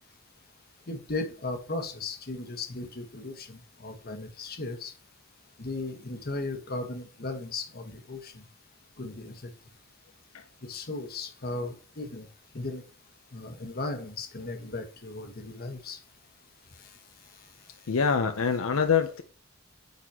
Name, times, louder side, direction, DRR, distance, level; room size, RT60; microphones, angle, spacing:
voice 1, 0.9-4.9 5.6-8.4 9.0-9.5 10.6-12.3 12.5-12.8 13.3-16.0 16.8-16.9, left 2 dB, 45° left, 1.2 m, -36 dB
voice 2, 17.9-19.2, left 6 dB, 80° left, 0.6 m, -25 dB
9.3 x 4.1 x 2.8 m
head